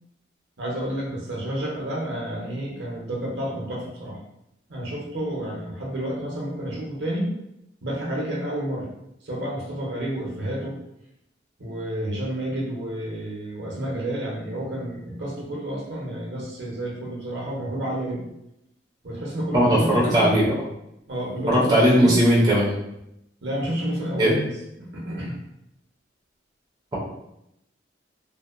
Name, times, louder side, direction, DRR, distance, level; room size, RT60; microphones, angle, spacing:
voice 1, 0.6-4.2 4.7-7.3 7.8-8.9 9.2-10.8 11.6-18.3 19.0-20.2 21.1-22.1 23.4-24.5 24.8-25.4, right 1 dB, 60° right, -4 dB, 0.7 m, -30 dB
voice 2, 19.5-20.5 21.5-22.7 24.2-24.4, equal, 20° right, -7 dB, 0.5 m, -18 dB
2.7 x 2.0 x 2.4 m, 0.83 s
head